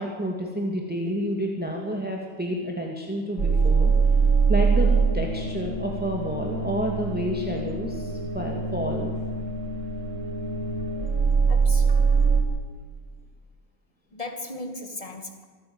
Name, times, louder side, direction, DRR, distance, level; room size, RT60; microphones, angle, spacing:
voice 1, 0.0-3.9 4.5-9.1, equal, 5° right, 1 dB, 2.3 m, -29 dB
sound 1, 3.4-12.4, right 4 dB, 55° right, 3.0 m, -23 dB
voice 2, 11.5-12.0 14.1-15.5, left 2 dB, 20° left, 5 dB, 2.3 m, -36 dB
25.5 x 12.5 x 9.7 m, 1.5 s
omnidirectional pair, 1.6 m